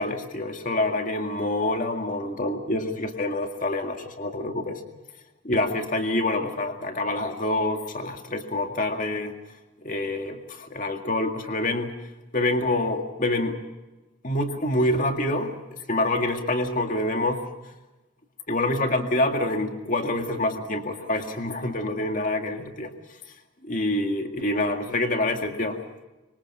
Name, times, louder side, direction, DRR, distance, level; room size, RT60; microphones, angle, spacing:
voice 1, 0.0-4.8 5.4-9.3 9.8-12.0 12.3-13.6 14.2-15.5 15.9-17.5 18.5-22.9 23.6-25.8, left 1 dB, 40° left, 4 dB, 2.1 m, -26 dB
25.0 x 25.0 x 5.6 m, 1.1 s
head